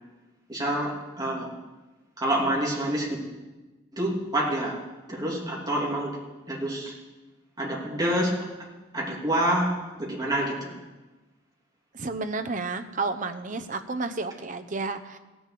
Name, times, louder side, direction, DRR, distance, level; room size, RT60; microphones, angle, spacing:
voice 1, 0.5-1.5 2.2-3.2 3.9-4.8 5.1-6.2 6.5-6.9 7.6-8.5 8.9-10.7, right 1 dB, 20° right, -3 dB, 2.7 m, -27 dB
voice 2, 11.9-15.2, right 3 dB, 40° right, 8 dB, 0.8 m, -31 dB
16.0 x 7.0 x 7.7 m, 1.2 s
head